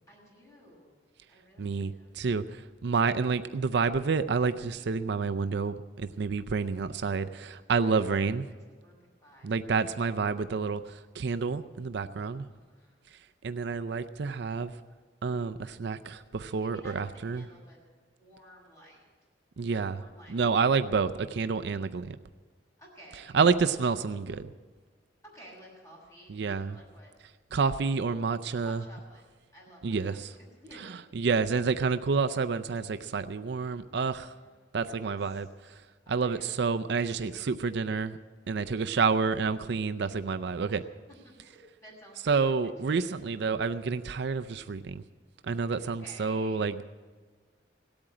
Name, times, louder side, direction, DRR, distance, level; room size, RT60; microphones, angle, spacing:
voice 1, 0.1-0.9 1.3-2.1 7.8-8.6 8.8-9.5 12.2-13.0 16.6-17.8 18.2-19.0 19.7-20.5 22.8-23.5 25.2-26.4 26.7-27.1 28.6-29.2 29.5-30.8 34.2-35.5 36.0-36.5 40.7-40.8 41.2-42.4 42.8-43.0 45.8-46.7, equal, 15° left, -4 dB, 6.2 m, -54 dB
voice 2, 1.6-8.4 9.4-12.4 13.4-14.7 15.2-17.5 19.6-20.0 20.3-22.2 23.3-24.5 26.3-26.8 27.5-28.8 29.8-30.3 31.1-34.3 34.7-35.5 36.1-38.2 38.5-40.8 42.3-45.0 45.4-46.8, right 5 dB, 65° right, 10 dB, 0.5 m, -29 dB
17.5 x 8.8 x 8.9 m, 1.4 s
head